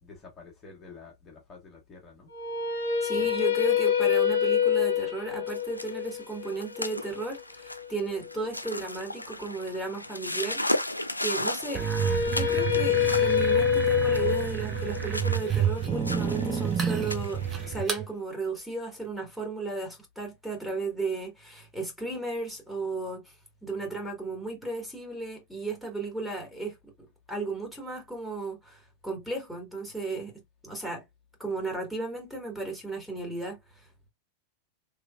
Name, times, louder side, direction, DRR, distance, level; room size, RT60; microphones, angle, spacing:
voice 1, 0.0-3.3, left 4 dB, 25° left, 1.2 m, -50 dB
sound 1, 2.3-8.4 11.7-17.7, left 8 dB, 70° left, 0.9 m, -27 dB
voice 2, 3.0-10.6 11.2-23.3 23.6-26.7 27.3-30.3 30.6-31.0 31.4-33.9, right 3 dB, ahead, 1.6 m, -35 dB
sound 2, 5.5-17.8, left 1 dB, 85° left, 0.3 m, -36 dB
sound 3, 11.7-18.0, right 9 dB, 25° right, 0.7 m, -29 dB
3.1 x 3.1 x 2.4 m
figure-of-eight pair, 90°, 0 cm